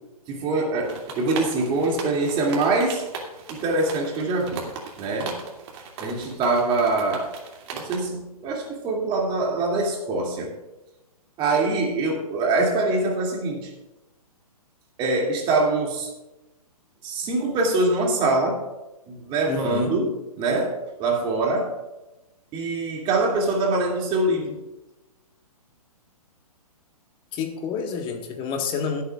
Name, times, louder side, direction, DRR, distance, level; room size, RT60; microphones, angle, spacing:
voice 1, 0.3-3.0 3.5-4.7 5.0-5.4 6.0-7.3 7.7-10.5 11.4-13.7 15.0-16.1 17.0-18.7 19.1-21.7 22.5-24.6, right 2 dB, 25° right, -1 dB, 2.6 m, -24 dB
sound 1, 0.8-8.0, right 4 dB, 45° right, 2.6 m, -38 dB
voice 2, 19.5-20.0 27.3-29.0, left 6 dB, 25° left, 4 dB, 1.6 m, -29 dB
22.0 x 8.4 x 2.5 m, 1.0 s
hypercardioid pair, 130°, 20 cm